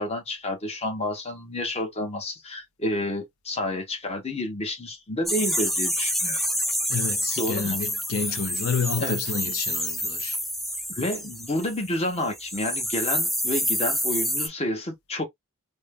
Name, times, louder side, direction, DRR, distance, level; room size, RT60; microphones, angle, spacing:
voice 1, 0.0-6.4 7.4-7.8 9.0-9.2 10.9-15.2, left 1 dB, 30° left, 1.0 m, -29 dB
sound 1, 5.3-11.9 12.2-14.5, equal, ahead, 0.3 m, -28 dB
voice 2, 6.9-10.4, left 5 dB, 75° left, 0.6 m, -29 dB
2.6 x 2.2 x 3.4 m
head